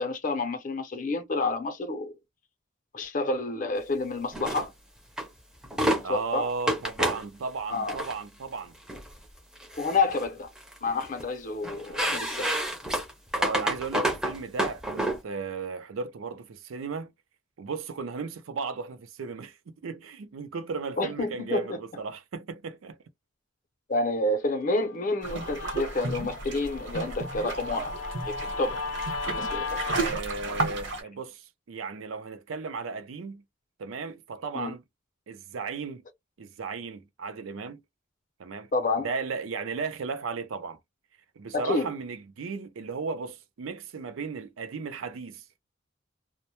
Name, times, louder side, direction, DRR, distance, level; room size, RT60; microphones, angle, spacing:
voice 1, 0.0-2.1 2.9-4.7 6.1-6.5 7.7-8.0 9.8-10.5 10.8-12.5 21.0-21.8 23.9-27.9 28.2-28.8 29.3-29.8 34.5-34.7 38.7-39.1 41.5-41.9, left 2 dB, 40° left, 0.6 m, -29 dB
sound 1, 4.3-4.7 5.2-5.3 5.6-6.0 6.7-7.2 7.8-8.1 8.9-9.1 9.6-10.2 10.6-11.2 11.6-15.2, right 1 dB, 5° right, 0.5 m, -29 dB
voice 2, 6.0-8.7 11.9-12.2 13.4-17.1 17.6-23.0 29.9-33.4 33.8-34.8 35.3-36.0 36.4-37.8 38.4-38.7 39.0-40.8 41.4-45.6, right 4 dB, 85° right, 0.4 m, -35 dB
Guitar, 24.6-30.1, left 4 dB, 90° left, 0.4 m, -36 dB
sound 2, 25.2-31.0, right 3 dB, 60° right, 0.9 m, -33 dB
2.1 x 2.0 x 2.8 m
head